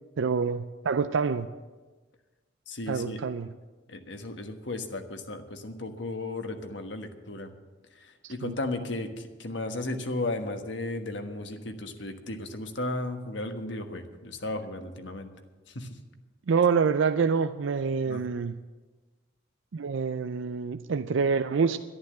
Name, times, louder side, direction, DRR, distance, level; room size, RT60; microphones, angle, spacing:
voice 1, 0.2-1.5 2.9-3.5 8.2-8.6 16.5-18.5 19.7-21.8, right 5 dB, 85° right, 10 dB, 0.5 m, -26 dB
voice 2, 2.7-3.2 3.9-7.5 8.0-15.3 15.7-15.9 18.0-18.2, left 2 dB, 70° left, 6 dB, 1.4 m, -35 dB
11.5 x 11.0 x 7.7 m, 1.3 s
head